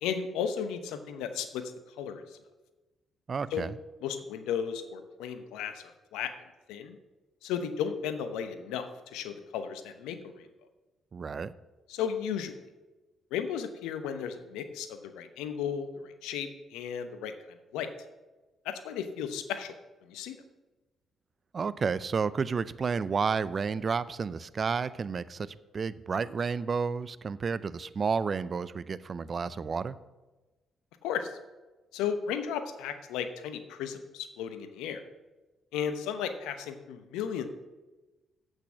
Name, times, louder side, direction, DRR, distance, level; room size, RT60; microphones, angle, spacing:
voice 1, 0.0-1.7 2.0-2.2 3.5-3.6 4.0-5.7 6.1-6.3 6.7-7.0 7.4-8.9 9.1-10.2 11.9-12.6 13.3-17.3 17.7-17.9 18.6-19.7 20.1-20.4 31.0-31.3 31.9-35.0 35.7-37.5, left 8 dB, 80° left, 9 dB, 0.9 m, -34 dB
voice 2, 3.3-3.8 11.1-11.5 21.5-30.0, right 5 dB, 45° right, 17 dB, 0.5 m, -31 dB
9.0 x 8.4 x 6.1 m, 1.2 s
hypercardioid pair, 45°, 0 cm